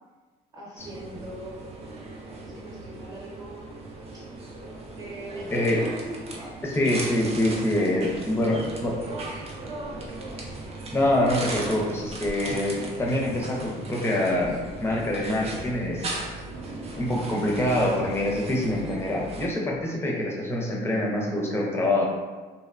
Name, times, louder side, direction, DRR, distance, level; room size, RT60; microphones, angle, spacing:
voice 1, 0.5-1.9 2.4-3.7 4.1-4.2 4.9-5.9 6.2-6.7 7.7-7.9 8.4-10.2, right 1 dB, 20° right, -6 dB, 0.8 m, -42 dB
sound 1, 0.8-19.5, right 2 dB, 40° right, 0.5 m, -37 dB
voice 2, 5.5-5.8 6.6-8.9 10.9-16.1 17.0-22.1, left 1 dB, 15° left, -2 dB, 0.5 m, -25 dB
2.7 x 2.1 x 2.4 m, 1.3 s
cardioid pair, 110°, 17 cm